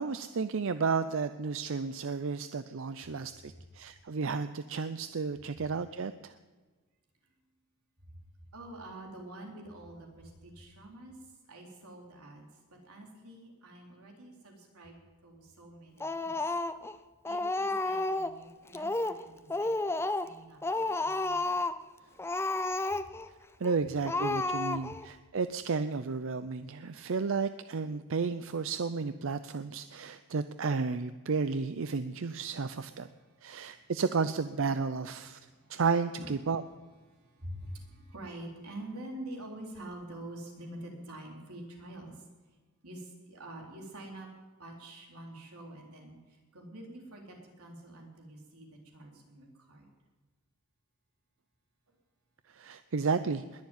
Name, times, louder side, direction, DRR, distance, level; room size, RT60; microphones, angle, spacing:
voice 1, 0.0-6.3 23.6-33.1 33.4-35.4 35.7-36.6 52.6-53.4, right 4 dB, 60° right, 12 dB, 0.5 m, -32 dB
voice 2, 8.5-11.2 11.5-12.5 12.7-16.4 17.3-21.5 33.1-33.9 35.2-35.8 36.2-36.5 37.1-42.2 42.8-44.3 44.6-49.9, right 1 dB, 85° right, 0 dB, 3.9 m, -47 dB
Speech, 16.0-16.9 17.3-18.4 18.7-19.2 19.5-20.4 20.6-21.8 22.2-23.3 23.6-23.7 24.1-25.1, left 2 dB, 10° left, 0.5 m, -31 dB
21.0 x 7.2 x 9.4 m, 1.3 s
head